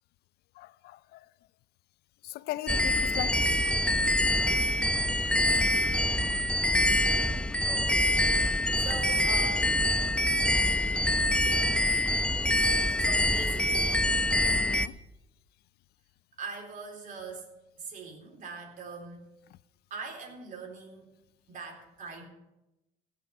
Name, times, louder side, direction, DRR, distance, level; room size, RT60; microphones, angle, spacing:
voice 1, 0.6-1.3 2.2-3.4 6.0-6.2 14.5-15.0, left 15 dB, 70° left, 0.4 m, -39 dB
sound 1, 2.7-14.9, left 1 dB, 5° left, 0.7 m, -25 dB
voice 2, 7.6-9.7 10.8-11.3 13.0-14.1 16.4-17.5 17.8-19.3 19.9-21.1 21.5-22.2, right 4 dB, 50° right, 3.8 m, -42 dB
16.0 x 6.2 x 8.5 m
cardioid pair, 110°, 17 cm